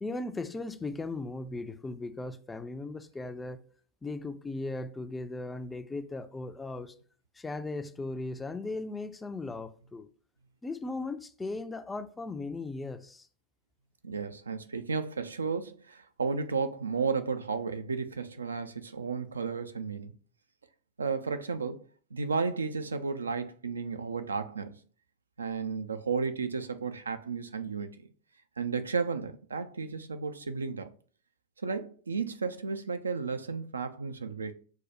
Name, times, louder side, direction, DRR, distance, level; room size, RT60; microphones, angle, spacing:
voice 1, 0.0-3.6 4.0-6.9 7.4-10.1 10.6-13.3, left 2 dB, 10° left, 0.3 m, -37 dB
voice 2, 14.0-20.1 21.0-21.8 22.1-24.8 25.4-27.9 28.6-30.9 31.6-34.5, right 5 dB, 75° right, 0.3 m, -33 dB
6.0 x 2.2 x 2.7 m
figure-of-eight pair, 90°, 0 cm